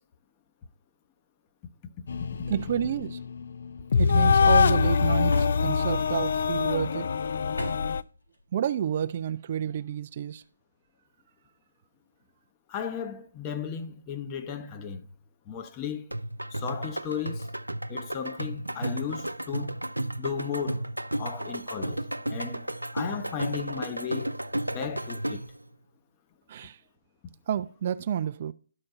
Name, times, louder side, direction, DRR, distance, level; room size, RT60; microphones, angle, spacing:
sound 1, 2.1-8.0, left 5 dB, 45° left, 0.3 m, -24 dB
voice 1, 2.5-3.2 4.0-7.1 8.5-10.4 26.5-26.8 27.5-28.5, right 9 dB, 30° right, 0.3 m, -30 dB
sound 2, 5.3-6.0 7.5-8.1, left 1 dB, 80° left, 3.8 m, -35 dB
voice 2, 12.7-15.1 15.5-16.1 16.5-17.5 17.9-19.8 20.2-20.9 21.2-22.7 22.9-24.4 24.7-25.5, left 7 dB, 20° left, 0.7 m, -35 dB
sound 3, 16.1-25.6, right 1 dB, 85° right, 0.6 m, -33 dB
12.0 x 4.4 x 5.4 m
figure-of-eight pair, 150°, 0 cm